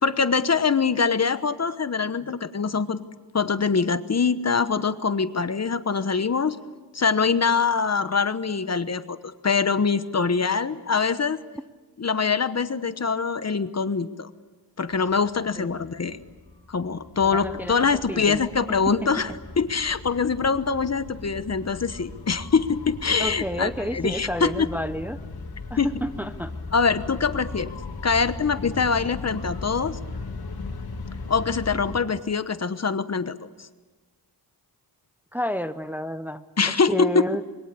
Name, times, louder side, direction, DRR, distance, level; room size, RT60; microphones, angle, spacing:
voice 1, 0.0-3.0 3.3-6.6 6.9-9.2 9.4-11.4 12.0-14.3 14.8-16.2 16.7-19.3 19.6-24.7 25.8-25.9 26.7-27.7 28.0-30.0 31.3-33.3 36.6-37.2, left 5 dB, 40° left, 12 dB, 1.1 m, -24 dB
sound 1, 14.9-32.0, left 3 dB, 65° left, 3.4 m, -38 dB
voice 2, 17.2-17.7 18.1-18.4 18.9-19.0 23.2-25.2 25.7-26.5 35.3-36.4 36.9-37.4, equal, 5° right, 10 dB, 0.8 m, -30 dB
26.0 x 22.5 x 8.5 m, 1.3 s
wide cardioid pair, 95°, 41 cm